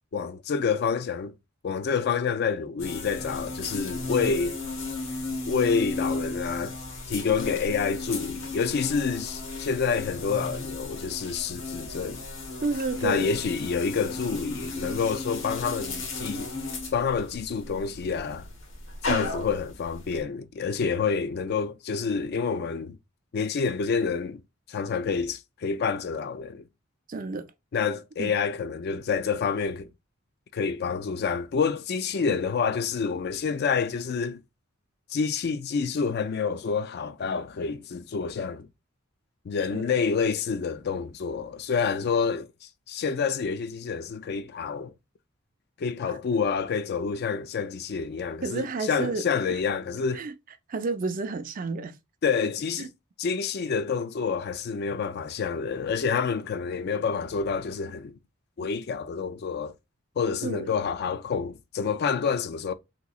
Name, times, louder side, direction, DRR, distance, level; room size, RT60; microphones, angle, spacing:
voice 1, 0.1-1.3 1.6-4.6 5.4-6.8 7.1-12.2 13.0-16.5 16.9-18.5 19.0-23.0 23.3-24.4 24.7-26.6 27.7-29.9 30.5-34.4 35.1-38.7 39.5-42.5 42.9-44.9 45.8-50.2 52.2-52.9 53.2-58.2 58.6-59.7 60.2-62.7, left 5 dB, 55° left, 0.4 m, -28 dB
sound 1, 2.8-20.2, left 2 dB, 75° left, 1.0 m, -35 dB
voice 2, 12.6-13.4 19.1-19.3 27.1-27.5 28.2-28.3 32.3-32.4 39.7-39.9 46.0-46.1 48.4-49.6 50.1-50.3 50.7-52.0 52.8-52.9 60.4-60.7, right 4 dB, 45° right, 0.4 m, -31 dB
3.5 x 2.9 x 2.3 m
head